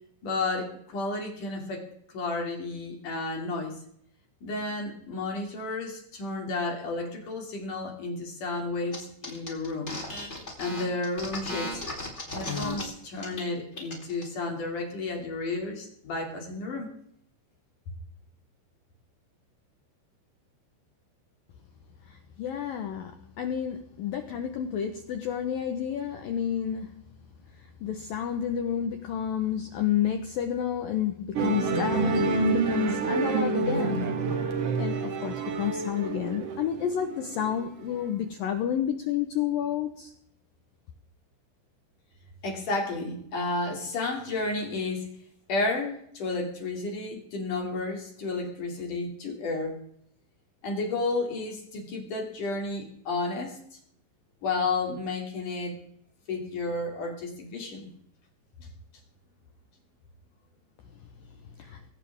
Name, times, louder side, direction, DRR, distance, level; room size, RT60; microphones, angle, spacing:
voice 1, 0.2-1.8 2.1-3.7 4.4-10.0 10.6-11.9 12.3-16.9 42.4-45.1 45.5-49.8 50.6-53.6 54.4-55.8 56.3-57.9 58.6-58.7, left 3 dB, 45° left, 1 dB, 3.9 m, -32 dB
sound 1, 8.9-9.0 9.2-12.8 13.2-13.4 13.7-14.2, left 2 dB, 15° left, 3.4 m, -35 dB
voice 2, 22.1-23.1 23.4-27.0 27.8-34.1 34.8-40.1 61.6-61.8, left 9 dB, 90° left, 6 dB, 2.0 m, -30 dB
Musical instrument, 31.3-38.0, right 5 dB, 85° right, 1.3 m, -28 dB
21.0 x 17.0 x 3.6 m, 0.68 s
omnidirectional pair, 5.7 m